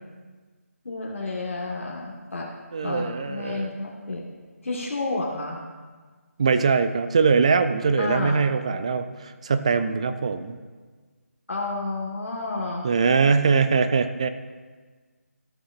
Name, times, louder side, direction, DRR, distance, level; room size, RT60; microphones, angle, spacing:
voice 1, 0.8-2.5 2.8-4.2 4.6-5.6 8.0-8.4 11.5-12.9, left 2 dB, 60° left, -2 dB, 1.4 m, -30 dB
voice 2, 2.7-3.7 6.4-10.6 12.8-14.3, right 5 dB, 25° right, 10 dB, 0.4 m, -22 dB
14.5 x 6.3 x 2.5 m, 1.4 s
figure-of-eight pair, 160°, 8 cm